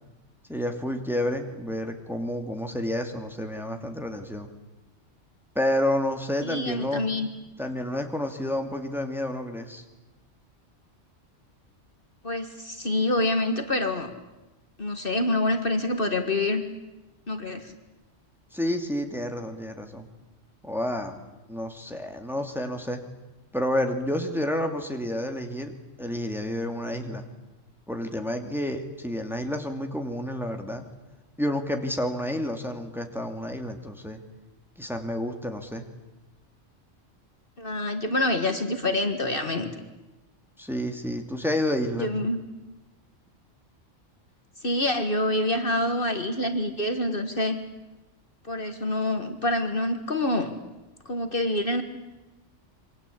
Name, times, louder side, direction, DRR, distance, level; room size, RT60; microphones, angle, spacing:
voice 1, 0.5-4.5 5.5-7.0 7.6-9.8 18.5-20.1 20.6-21.2 21.5-23.0 23.5-27.3 27.9-30.9 31.4-34.2 34.8-35.8 40.6-42.1, left 1 dB, ahead, 4 dB, 2.4 m, -30 dB
voice 2, 6.4-7.3 12.2-14.1 14.8-16.6 17.3-17.7 37.6-39.7 42.0-42.4 44.6-47.6 48.4-50.6 51.1-51.8, left 1 dB, 45° left, 7 dB, 1.9 m, -26 dB
27.5 x 24.0 x 8.5 m, 1.0 s
omnidirectional pair, 1.3 m